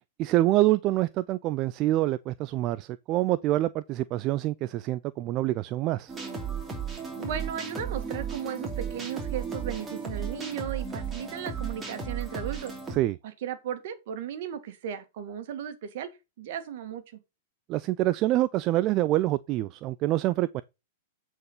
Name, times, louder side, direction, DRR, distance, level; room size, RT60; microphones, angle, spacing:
voice 1, 0.2-6.1 12.9-13.2 17.7-20.6, right 16 dB, 40° right, 0.4 m, -26 dB
sound 1, 6.1-13.0, right 6 dB, 15° right, 2.8 m, -34 dB
voice 2, 7.2-12.7 13.4-16.1 16.4-17.0, right 9 dB, 60° right, 1.8 m, -35 dB
8.2 x 4.5 x 5.7 m
hypercardioid pair, 115°, 0 cm